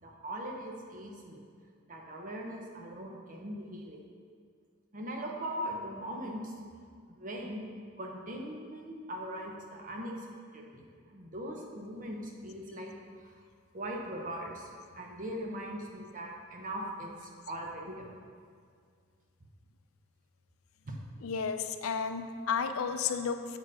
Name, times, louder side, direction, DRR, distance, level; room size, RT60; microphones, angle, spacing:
voice 1, 0.0-1.4 1.9-4.0 4.9-6.5 7.1-7.7 8.0-10.2 10.5-13.4 13.7-14.7 14.9-18.1 20.8-21.0, equal, 40° right, 0 dB, 0.9 m, -40 dB
voice 2, 21.2-23.6, left 6 dB, 85° left, 8 dB, 0.4 m, -32 dB
7.1 x 4.5 x 4.9 m, 2.1 s
head